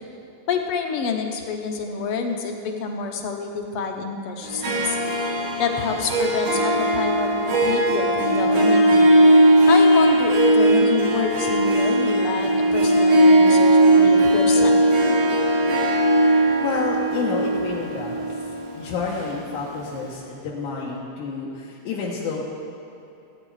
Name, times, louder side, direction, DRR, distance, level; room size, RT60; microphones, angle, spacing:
voice 1, 0.5-5.0 5.6-9.2 9.7-14.8, left 5 dB, 65° left, 3 dB, 1.5 m, -27 dB
Harp, 4.4-19.8, right 1 dB, 90° right, 3.3 m, -18 dB
voice 2, 16.6-18.3 18.8-22.4, left 4 dB, 85° left, -5 dB, 2.6 m, -29 dB
16.0 x 8.9 x 4.8 m, 2.8 s
omnidirectional pair, 3.4 m